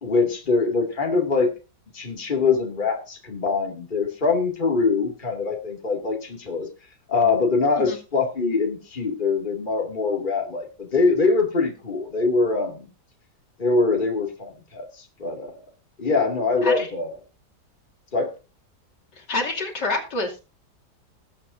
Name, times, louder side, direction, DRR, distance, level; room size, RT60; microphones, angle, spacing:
voice 1, 0.0-1.5 1.9-6.7 7.1-12.9 13.6-15.6 16.0-17.1 18.1-18.3, left 4 dB, 30° left, 2 dB, 2.4 m, -23 dB
voice 2, 19.1-20.4, left 2 dB, 85° left, 1 dB, 3.3 m, -27 dB
20.0 x 8.6 x 2.6 m, 0.31 s
omnidirectional pair, 1.8 m